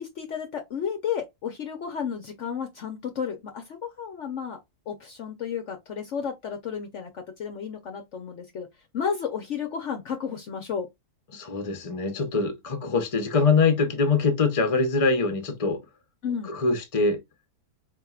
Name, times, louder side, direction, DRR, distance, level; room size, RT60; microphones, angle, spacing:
voice 1, 0.0-4.6 4.9-8.7 8.9-10.9 16.2-16.5, left 7 dB, 60° left, 0.9 m, -32 dB
voice 2, 11.3-15.8 16.4-17.2, left 4 dB, 25° left, 0.8 m, -23 dB
4.5 x 3.5 x 2.3 m
omnidirectional pair, 1.6 m